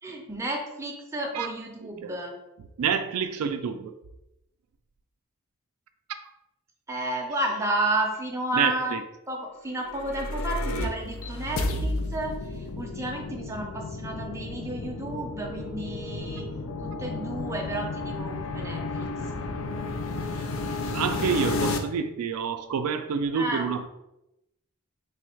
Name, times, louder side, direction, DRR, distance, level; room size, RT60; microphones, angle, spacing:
voice 1, 0.0-2.3 6.9-8.9 9.3-16.4 16.8-19.1 23.3-23.7, right 2 dB, 15° right, 0 dB, 0.5 m, -32 dB
voice 2, 1.8-2.2 2.8-3.9 8.5-9.0 20.4-23.9, right 6 dB, 85° right, 8 dB, 0.4 m, -28 dB
sound 1, 9.7-21.8, left 2 dB, 60° left, 0.4 m, -32 dB
3.3 x 2.3 x 4.3 m, 0.89 s
head